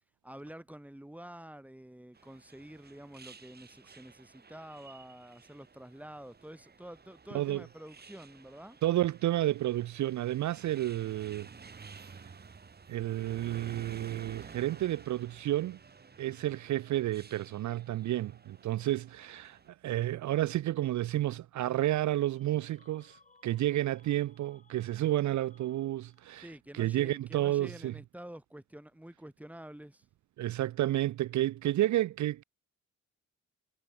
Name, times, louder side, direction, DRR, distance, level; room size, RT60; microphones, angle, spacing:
voice 1, 0.2-8.8 26.4-30.1, right 1 dB, 5° right, 5.3 m, -48 dB
sound 1, 2.1-19.7, right 5 dB, 30° right, 2.0 m, -53 dB
voice 2, 7.3-7.6 8.8-11.5 11.9-12.3 12.9-15.8 16.2-26.5 26.7-27.9 30.4-32.4, right 14 dB, 65° right, 0.5 m, -31 dB
sound 2, 22.3-26.5, left 3 dB, 25° left, 3.4 m, -65 dB
cardioid pair, 95°, 31 cm